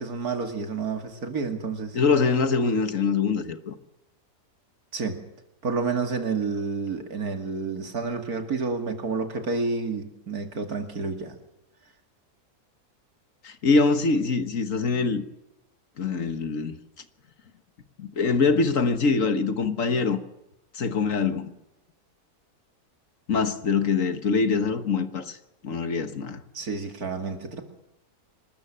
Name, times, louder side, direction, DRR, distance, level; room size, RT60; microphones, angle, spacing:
voice 1, 0.0-2.0 4.9-5.2 5.6-11.4 26.5-27.6, right 4 dB, 75° right, 2.8 m, -29 dB
voice 2, 1.9-3.7 13.4-15.2 16.0-16.7 18.0-20.2 20.7-21.5 23.3-25.4 25.6-26.4, left 4 dB, 60° left, 1.7 m, -24 dB
25.5 x 13.5 x 7.5 m
omnidirectional pair, 1.6 m